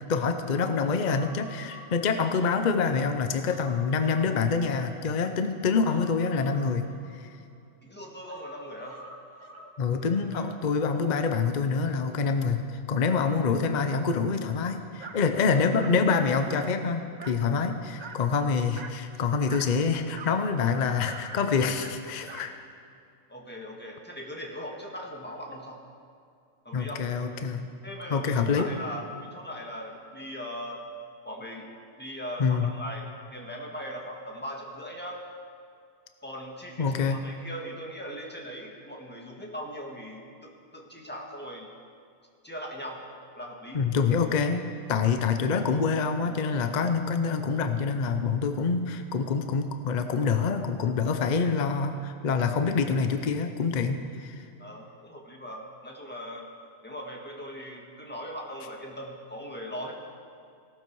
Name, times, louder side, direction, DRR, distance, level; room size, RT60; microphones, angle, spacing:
voice 1, 0.1-7.3 9.8-22.6 26.7-27.6 28.1-28.7 32.4-32.7 36.8-37.2 43.7-54.5, left 5 dB, 40° left, 7 dB, 0.7 m, -26 dB
Human voice, 1.0-2.8 3.2-5.2 5.9-7.6 8.3-10.2 10.5-10.6, equal, 25° right, 1.2 m, -49 dB
voice 2, 7.8-9.0 10.3-10.5 23.3-25.8 26.6-27.0 27.8-30.8 31.2-31.7 32.0-33.0 33.3-35.2 36.2-41.7 42.4-43.0 43.3-43.8 54.6-56.5 56.8-59.9, equal, 10° left, -1 dB, 1.7 m, -39 dB
Dog, 15.0-15.2 15.8-16.0 16.5-16.8 17.2-17.5 18.0-18.2 18.7-19.0 19.5-19.8 20.1-20.4 21.1-22.5, right 5 dB, 40° right, 0.7 m, -43 dB
17.0 x 12.5 x 4.7 m, 2.4 s
omnidirectional pair, 1.4 m